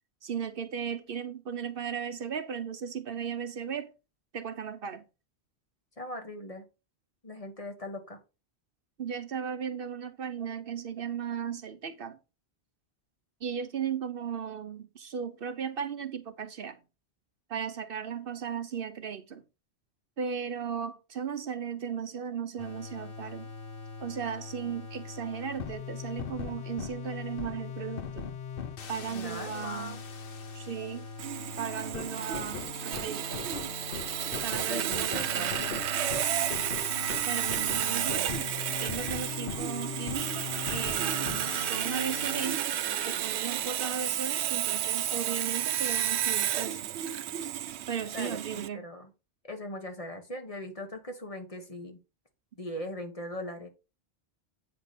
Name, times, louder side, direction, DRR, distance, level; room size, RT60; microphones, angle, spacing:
voice 1, 0.2-3.9 4.3-5.0 9.0-12.2 13.4-16.8 17.5-19.4 20.2-23.5 24.0-28.3 28.9-30.0 30.5-31.1 31.6-33.4 34.4-35.5 37.2-38.5 38.8-42.6 43.1-46.8 47.9-48.8, right 7 dB, 60° right, 0.9 m, -36 dB
voice 2, 6.0-6.6 7.2-8.2 29.1-30.0 34.5-35.8 48.1-49.1 49.4-52.0 52.5-53.7, left 1 dB, 35° left, 1.5 m, -40 dB
sound 1, 22.6-42.5, left 6 dB, 60° left, 1.0 m, -40 dB
Sawing, 31.2-48.7, right 11 dB, 90° right, 0.9 m, -32 dB
8.4 x 5.2 x 4.2 m
omnidirectional pair, 1.1 m